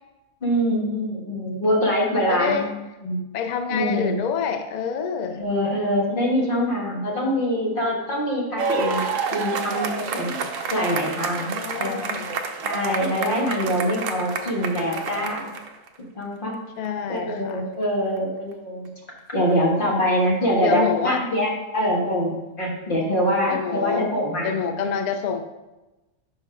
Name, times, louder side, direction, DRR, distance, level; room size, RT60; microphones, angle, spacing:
voice 1, 0.4-2.6 3.0-3.2 3.7-4.2 5.4-9.0 9.3-10.4 10.7-11.5 11.8-12.1 12.6-15.5 16.1-16.5 17.1-18.9 19.3-24.6, equal, 40° left, -3 dB, 1.7 m, -24 dB
voice 2, 2.3-2.7 3.3-5.4 11.5-12.4 16.8-17.6 20.6-21.2 23.5-24.1 24.4-25.4, left 6 dB, 85° left, 7 dB, 0.3 m, -27 dB
sound 1, 8.6-15.9 16.8-16.9, right 5 dB, 75° right, 1.0 m, -29 dB
5.6 x 4.4 x 5.0 m, 1.1 s
omnidirectional pair, 1.3 m